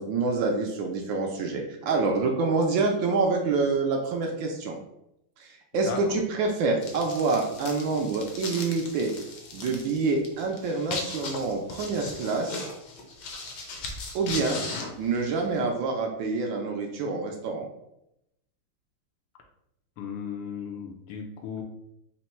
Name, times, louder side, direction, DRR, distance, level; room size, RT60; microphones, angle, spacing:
voice 1, 0.0-4.8 5.4-9.1 9.5-12.7 14.1-14.6 15.0-17.7, right 3 dB, 75° right, 2 dB, 1.2 m, -27 dB
sound 1, 6.8-15.6, left 3 dB, 65° left, 1.1 m, -38 dB
voice 2, 20.0-21.6, left 6 dB, 80° left, 2 dB, 1.5 m, -36 dB
4.4 x 2.1 x 4.1 m, 0.82 s
omnidirectional pair, 2.4 m